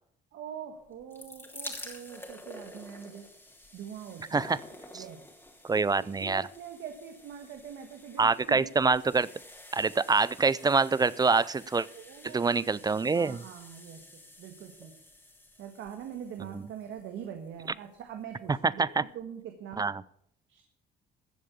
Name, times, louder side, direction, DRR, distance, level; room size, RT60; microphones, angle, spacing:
voice 1, 0.3-3.3 3.7-4.5 4.9-5.2 5.9-8.8 11.9-14.9 15.6-19.9 20.5-20.6, right 8 dB, 80° right, 5 dB, 1.5 m, -44 dB
sound 1, 0.9-17.9 18.7-18.8 18.9-19.0, left 1 dB, 10° left, 3.1 m, -49 dB
voice 2, 5.6-6.4 8.2-9.3 9.7-11.9 12.2-13.4 16.5-16.6 18.6-19.0 19.8-20.0, right 4 dB, 20° right, 20 dB, 0.4 m, -25 dB
14.5 x 7.5 x 7.0 m, 0.73 s
cardioid pair, 95°, 19 cm